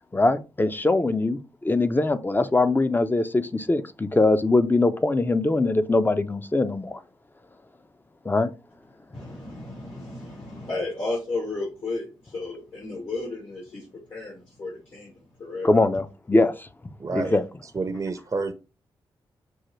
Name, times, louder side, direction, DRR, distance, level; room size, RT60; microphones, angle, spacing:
voice 1, 0.1-7.0 8.2-8.5 15.6-16.7 17.1-17.4, left 2 dB, 20° left, 0.5 m, -22 dB
voice 2, 9.1-13.8 14.1-15.7 17.1-17.3, left 2 dB, 70° left, 2.5 m, -33 dB
voice 3, 17.0-17.3 17.7-18.5, right 4 dB, 35° right, 0.5 m, -28 dB
6.2 x 2.2 x 3.1 m
supercardioid pair, 45°, 10 cm